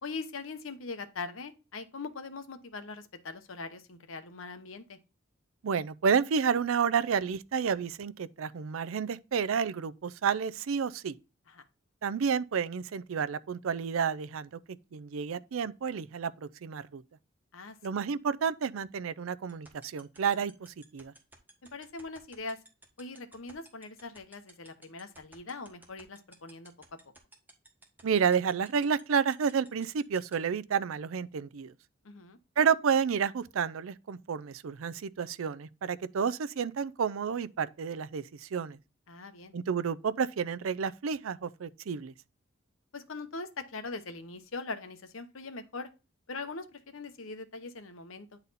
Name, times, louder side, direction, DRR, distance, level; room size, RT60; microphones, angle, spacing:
voice 1, 0.0-5.0 11.5-11.6 17.5-18.0 21.7-22.6 23.0-26.7 32.0-32.4 39.1-39.5 42.9-45.9 46.3-48.4, left 3 dB, 80° left, 0.9 m, -41 dB
voice 2, 5.6-11.1 12.0-14.5 14.9-17.0 17.8-20.5 20.9-21.1 28.0-31.7 32.6-38.8 39.5-42.1, right 6 dB, 85° right, 0.4 m, -30 dB
sound 1, 19.5-30.3, right 2 dB, 10° right, 1.5 m, -53 dB
9.7 x 4.1 x 4.0 m
head